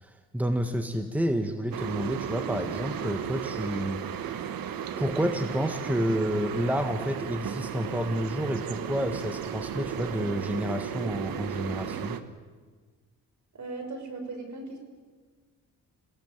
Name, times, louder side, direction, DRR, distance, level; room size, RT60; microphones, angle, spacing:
voice 1, 0.0-4.0 5.0-12.2, equal, 5° right, 6 dB, 1.6 m, -30 dB
sound 1, 1.7-12.2, right 8 dB, 85° right, 1.4 m, -34 dB
voice 2, 13.5-14.8, right 3 dB, 60° right, 6 dB, 5.7 m, -38 dB
27.5 x 17.5 x 9.4 m, 1.5 s
cardioid pair, 100°, 34 cm